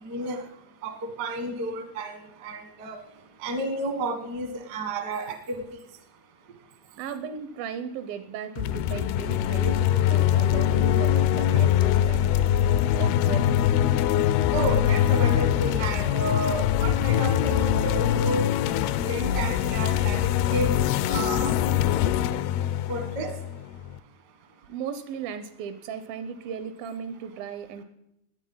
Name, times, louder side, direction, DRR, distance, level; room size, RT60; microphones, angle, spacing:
voice 1, 0.0-0.4 0.8-3.0 3.4-5.6 14.5-18.4 19.0-20.7 21.1-21.6 22.9-23.3, right 2 dB, 60° right, 6 dB, 1.0 m, -31 dB
voice 2, 7.0-12.4 13.0-14.0 24.7-27.8, right 7 dB, 80° right, 12 dB, 2.3 m, -36 dB
sound 1, 8.6-24.0, left 11 dB, 80° left, 2.5 m, -23 dB
20.0 x 8.9 x 5.5 m, 0.84 s
omnidirectional pair, 4.6 m